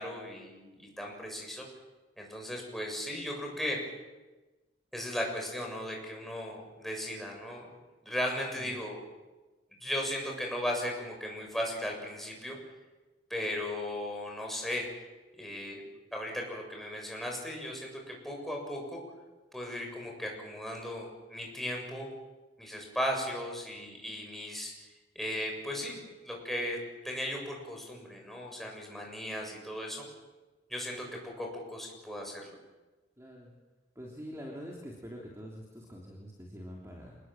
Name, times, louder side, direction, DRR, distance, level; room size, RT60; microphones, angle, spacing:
voice 1, 0.0-1.7 2.2-3.8 4.9-7.7 8.0-9.0 9.8-12.6 13.3-14.9 15.4-15.8 16.1-19.0 19.5-22.1 22.6-24.7 25.2-26.8 27.0-30.0 30.7-32.5, left 1 dB, ahead, 0 dB, 7.0 m, -36 dB
voice 2, 33.2-33.5 33.9-37.2, equal, 15° right, -2 dB, 3.2 m, -45 dB
28.0 x 20.5 x 7.7 m, 1.2 s
head